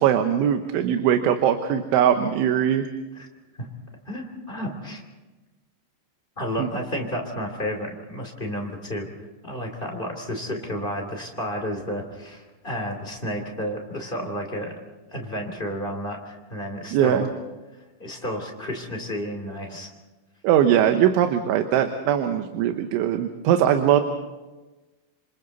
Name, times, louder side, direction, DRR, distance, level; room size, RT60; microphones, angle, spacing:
voice 1, 0.0-2.9 6.6-6.7 16.9-17.3 20.4-24.0, right 10 dB, 85° right, 6 dB, 3.5 m, -21 dB
voice 2, 4.0-5.0 6.4-9.1 9.4-14.7 15.1-17.3 18.0-19.9, equal, 20° left, 2 dB, 1.6 m, -31 dB
28.5 x 27.0 x 4.1 m, 1.2 s
omnidirectional pair, 5.3 m